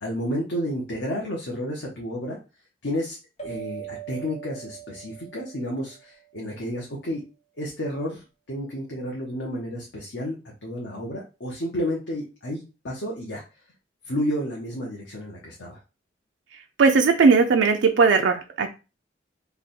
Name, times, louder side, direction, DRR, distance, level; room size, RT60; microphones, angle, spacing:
voice 1, 0.0-2.4 2.8-3.2 3.4-7.2 7.6-13.4 14.0-15.8, equal, 90° left, -2 dB, 0.9 m, -31 dB
sound 1, 3.4-6.4, right 12 dB, 35° left, 1.0 m, -41 dB
voice 2, 16.8-18.7, right 4 dB, 80° right, 4 dB, 0.4 m, -18 dB
3.4 x 2.3 x 4.1 m, 0.30 s
head